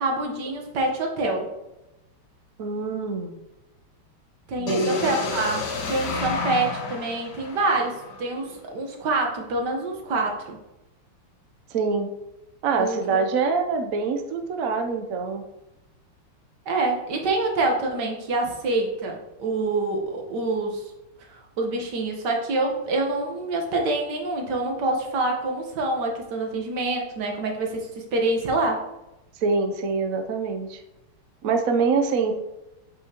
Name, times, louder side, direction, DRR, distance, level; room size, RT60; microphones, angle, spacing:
voice 1, 0.0-1.5 4.5-10.6 12.8-13.2 16.7-20.9 21.2-28.8, right 2 dB, 55° right, 1 dB, 1.6 m, -26 dB
voice 2, 2.6-3.3 4.6-5.1 11.7-12.1 12.6-15.4 29.4-30.8 31.4-32.3, right 4 dB, 85° right, 4 dB, 0.7 m, -25 dB
sound 1, 4.7-8.6, left 4 dB, 55° left, 1.4 m, -31 dB
8.0 x 5.6 x 2.9 m, 0.94 s
omnidirectional pair, 2.4 m